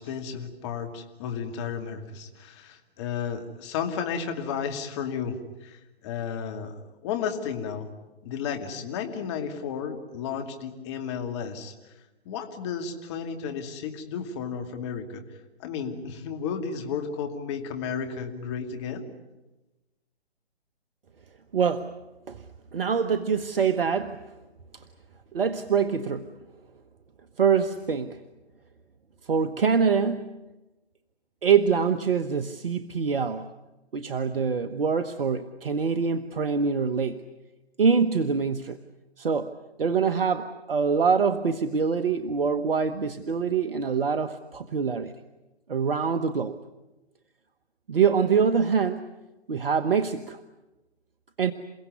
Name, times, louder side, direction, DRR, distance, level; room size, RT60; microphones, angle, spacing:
voice 1, 0.0-7.9 8.2-11.9 12.2-15.2 15.6-19.1, left 7 dB, 25° left, 5 dB, 2.5 m, -33 dB
voice 2, 21.5-21.9 22.3-22.4 22.7-24.2 25.3-26.3 27.4-28.2 29.3-30.3 31.4-33.5 33.9-37.2 37.8-38.8 39.2-39.5 39.8-45.1 45.7-46.5 47.9-49.1 49.5-50.4 51.4-51.5, right 6 dB, 60° right, 10 dB, 1.2 m, -24 dB
28.5 x 17.0 x 9.7 m, 1.1 s
figure-of-eight pair, 140°, 32 cm